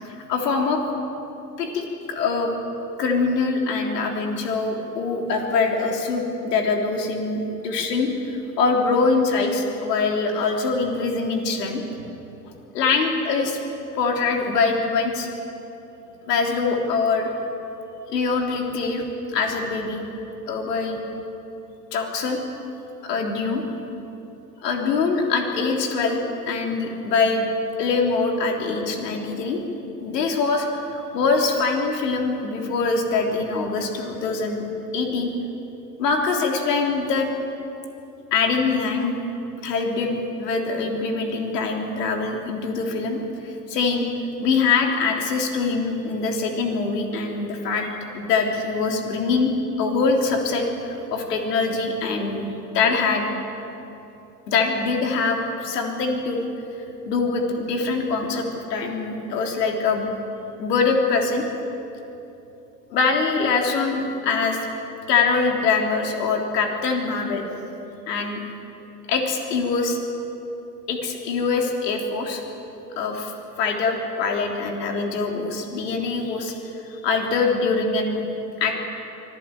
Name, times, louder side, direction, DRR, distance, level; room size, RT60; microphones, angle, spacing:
voice 1, 0.3-0.8 1.6-2.5 3.0-11.8 12.7-13.6 13.9-15.3 16.3-17.3 18.1-19.0 19.3-20.0 20.5-21.0 21.9-22.4 23.0-23.6 24.6-27.5 27.8-29.6 30.0-34.7 34.9-35.3 36.0-37.3 38.3-39.2 39.6-44.1 44.4-47.9 48.1-49.5 49.8-52.4 52.7-53.3 54.5-56.4 57.1-60.1 60.6-61.5 62.9-64.6 65.1-67.4 68.1-68.4 69.1-70.0 70.9-72.4 73.0-73.3 73.6-76.6 76.9-78.2 78.6-78.7, left 4 dB, 75° left, 2 dB, 3.7 m, -23 dB
25.0 x 14.5 x 9.1 m, 3.0 s
hypercardioid pair, 85°, 49 cm